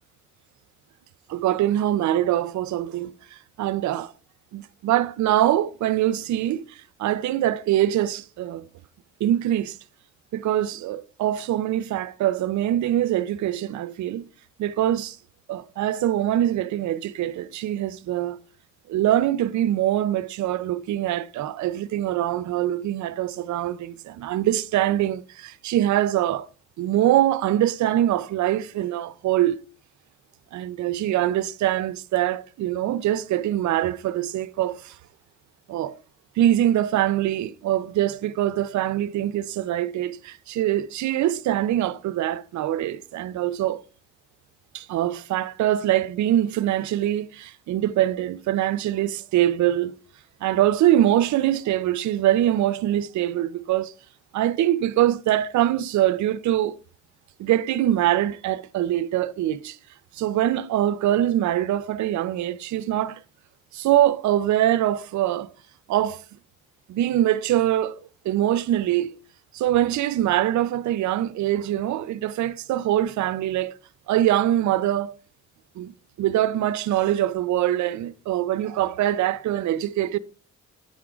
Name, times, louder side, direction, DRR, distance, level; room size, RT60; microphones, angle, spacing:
voice 1, 1.3-3.1 3.6-4.1 4.5-6.6 7.0-8.7 9.2-9.8 10.3-14.3 14.6-15.2 15.5-18.4 18.9-26.5 26.8-29.6 30.5-34.9 35.7-35.9 36.4-43.8 44.7-49.9 50.4-53.9 54.3-56.7 57.4-59.8 60.2-63.2 63.7-65.5 65.9-66.2 66.9-68.0 68.2-69.1 69.5-73.7 74.1-75.1 75.8-75.9 76.2-80.2, right 12 dB, 70° right, 0.5 m, -23 dB
8.6 x 3.6 x 4.8 m
cardioid pair, 90°, 30 cm